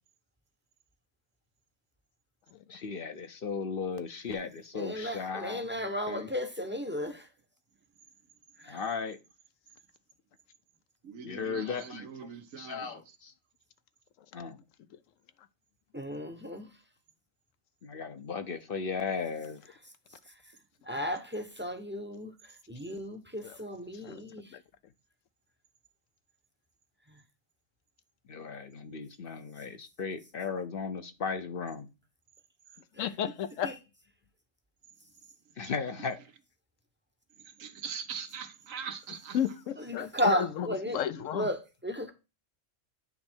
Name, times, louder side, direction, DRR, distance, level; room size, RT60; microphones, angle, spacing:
voice 1, 2.7-6.3 8.7-9.2 11.2-12.0 12.6-13.3 14.3-14.6 17.8-19.6 28.3-31.7 35.6-36.2, left 5 dB, 50° left, 0.8 m, -36 dB
voice 2, 4.7-7.2 8.6-8.8 15.9-16.7 20.9-22.3 22.7-24.4 33.0-33.1 33.6-33.7 39.9-41.0 41.3-42.1, equal, 10° right, 0.7 m, -34 dB
voice 3, 11.0-13.2 35.6-35.7 37.4-39.4 40.8-40.9, right 7 dB, 85° right, 1.3 m, -42 dB
voice 4, 33.0-33.8 39.3-41.5, left 9 dB, 80° left, 1.0 m, -33 dB
9.4 x 3.2 x 4.4 m
omnidirectional pair, 1.3 m